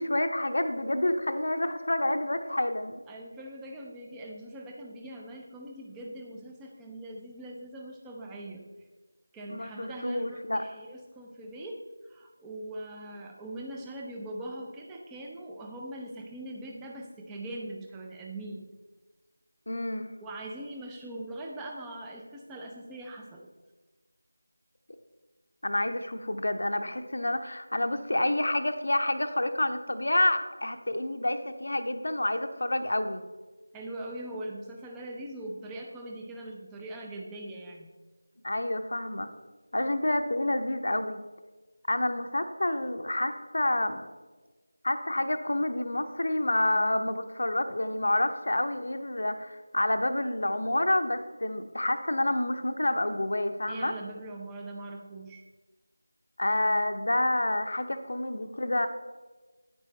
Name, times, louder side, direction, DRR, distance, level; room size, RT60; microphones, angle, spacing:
voice 1, 0.0-3.0 9.5-10.6 19.7-20.1 25.6-33.2 38.4-39.3 39.7-41.2 41.9-44.1 44.8-53.9 56.4-58.9, left 1 dB, 55° left, 7 dB, 0.7 m, -28 dB
voice 2, 3.1-8.6 9.3-11.8 12.0-18.7 20.2-23.5 33.7-37.9 53.7-55.4, right 1 dB, 5° right, 0 dB, 0.6 m, -41 dB
9.7 x 8.8 x 3.2 m, 1.3 s
figure-of-eight pair, 165°, 0 cm